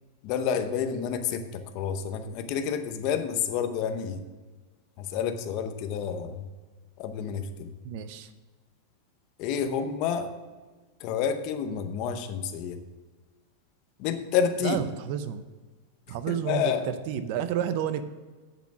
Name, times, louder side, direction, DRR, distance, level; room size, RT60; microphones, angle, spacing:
voice 1, 0.2-4.2 5.0-6.5 7.0-7.7 9.4-10.3 11.0-12.8 14.0-14.8 16.3-16.9, left 7 dB, 35° left, 8 dB, 0.8 m, -29 dB
voice 2, 7.8-8.3 14.6-15.4 16.1-18.1, right 9 dB, 45° right, 12 dB, 0.6 m, -30 dB
8.7 x 7.1 x 6.1 m, 1.3 s
supercardioid pair, 170°, 0 cm